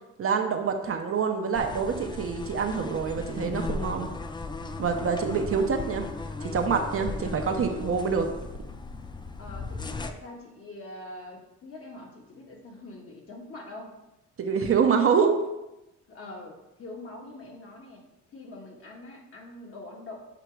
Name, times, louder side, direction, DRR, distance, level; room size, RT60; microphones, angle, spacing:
voice 1, 0.2-4.1 4.8-6.1 6.4-8.3 14.4-15.4, right 6 dB, 45° right, 4 dB, 0.7 m, -26 dB
sound 1, 1.5-10.1, left 3 dB, 15° left, 0.3 m, -36 dB
voice 2, 9.4-14.0 16.1-18.0 18.3-20.3, left 2 dB, 50° left, 0 dB, 1.4 m, -44 dB
6.9 x 2.9 x 4.6 m, 0.95 s
cardioid pair, 90°, 30 cm